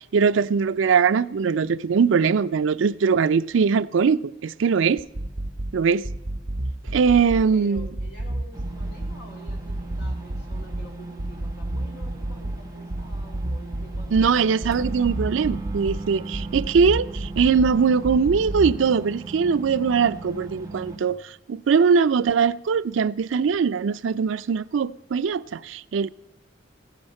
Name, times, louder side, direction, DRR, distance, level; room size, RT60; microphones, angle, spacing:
voice 1, 0.0-5.0 5.7-6.1 6.9-7.9 14.1-26.1, right 6 dB, 80° right, 0.4 m, -21 dB
sound 1, 5.0-5.7 6.0-7.4 7.8-9.1 9.5-10.9 11.2-12.6 12.9-14.3 14.6-16.0 16.3-17.7 18.0-18.7, right 1 dB, 60° right, 0.9 m, -29 dB
voice 2, 7.5-14.9 16.5-16.7, equal, 65° left, 3.2 m, -47 dB
sound 2, 8.5-21.0, right 3 dB, 20° right, 1.2 m, -38 dB
15.5 x 9.3 x 5.3 m
head